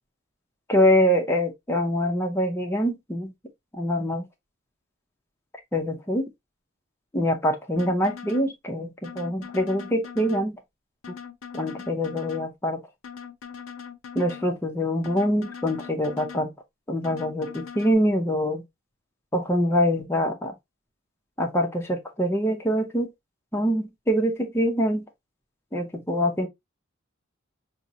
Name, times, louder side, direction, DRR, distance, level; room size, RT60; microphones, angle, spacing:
voice 1, 0.7-3.3 3.8-4.2 5.7-6.3 7.1-10.6 11.5-12.8 14.2-16.5 16.9-18.6 19.3-20.5 21.4-23.1 23.5-25.1 25.7-26.5, equal, 10° left, 0.5 m, -24 dB
sound 1, 7.8-8.5 9.0-10.5 11.0-12.5 13.0-14.5 15.0-16.5 17.0-17.9, left 7 dB, 90° left, 0.5 m, -41 dB
4.8 x 2.0 x 2.6 m
head